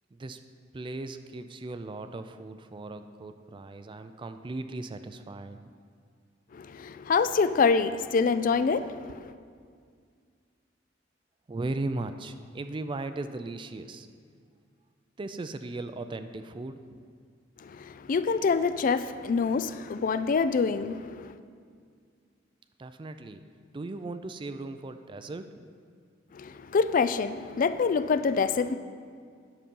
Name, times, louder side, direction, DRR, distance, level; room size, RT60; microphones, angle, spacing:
voice 1, 0.7-5.8 11.5-14.1 15.2-17.0 22.8-23.4 23.7-25.7, right 2 dB, 25° right, 9 dB, 0.4 m, -37 dB
voice 2, 6.5-9.3 17.6-21.3 26.3-28.8, left 5 dB, 45° left, 13 dB, 0.3 m, -26 dB
10.0 x 6.7 x 5.3 m, 2.1 s
head